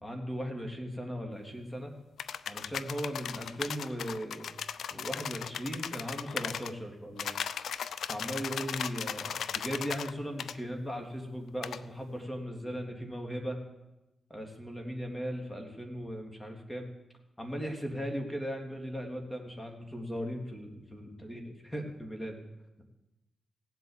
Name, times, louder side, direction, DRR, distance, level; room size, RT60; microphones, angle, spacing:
voice 1, 0.0-1.9 2.5-4.5 4.9-7.3 8.1-13.6 14.3-16.9 17.4-22.4, equal, 10° left, 2 dB, 3.1 m, -38 dB
sound 1, 2.2-6.7 7.2-10.1 10.4-10.6 11.6-11.8, left 8 dB, 80° left, 0.5 m, -37 dB
17.0 x 8.1 x 7.5 m, 0.99 s
cardioid pair, 55°, 0 cm